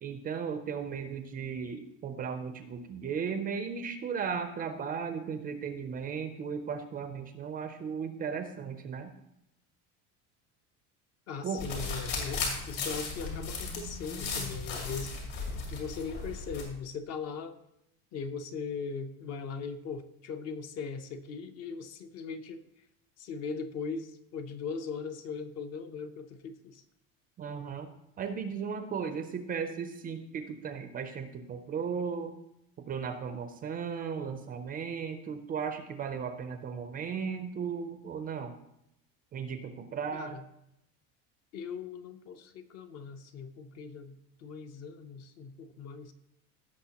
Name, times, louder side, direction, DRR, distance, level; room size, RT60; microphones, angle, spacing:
voice 1, 0.0-9.1 11.4-11.6 27.4-27.9 28.2-32.3 32.9-38.5 39.3-40.4, right 6 dB, 25° right, 8 dB, 0.4 m, -36 dB
voice 2, 11.3-15.1 15.7-17.6 18.1-22.7 23.2-26.8 40.1-40.4 41.5-46.1, left 5 dB, 45° left, 9 dB, 0.7 m, -39 dB
sound 1, 11.6-16.6, left 4 dB, 65° left, 2.8 m, -36 dB
16.5 x 6.3 x 2.9 m, 0.81 s
cardioid pair, 170°, 36 cm